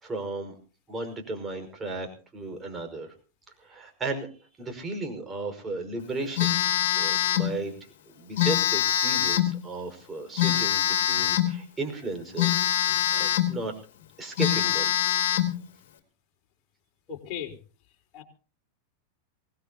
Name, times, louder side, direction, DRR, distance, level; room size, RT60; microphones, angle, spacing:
voice 1, 0.0-0.5 0.9-3.1 3.6-4.3 4.6-6.6 7.0-7.7 8.1-13.7 14.2-14.9, right 2 dB, 15° right, 3 dB, 5.3 m, -35 dB
Telephone, 6.4-7.5 8.4-9.6 10.4-11.6 12.4-13.6 14.0-14.1 14.4-15.6, left 11 dB, 55° left, 3.1 m, -24 dB
voice 2, 17.1-17.5 18.1-18.2, left 9 dB, 35° left, 3 dB, 4.1 m, -36 dB
24.0 x 19.0 x 2.9 m, 0.39 s
figure-of-eight pair, 90°, 0 cm